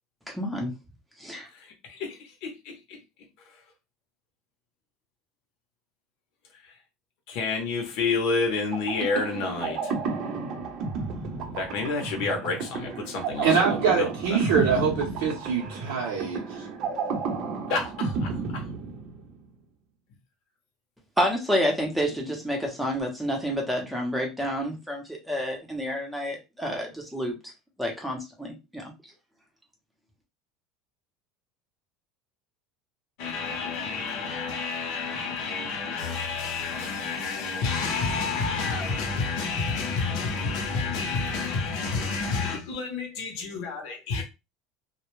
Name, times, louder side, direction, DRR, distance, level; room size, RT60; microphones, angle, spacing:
voice 1, 0.3-0.7 1.2-1.5 21.2-27.5 27.8-28.8, equal, 5° right, 0.7 m, -29 dB
voice 2, 1.5-3.0 6.6-6.7 7.3-9.9 11.6-14.1 17.7-18.7 33.2-44.2, left 4 dB, 60° left, 0.7 m, -29 dB
sound 1, 8.7-19.4, right 4 dB, 45° right, 0.6 m, -32 dB
voice 3, 13.4-16.4, right 6 dB, 80° right, 0.7 m, -24 dB
2.2 x 2.1 x 3.0 m
cardioid pair, 155°, 0 cm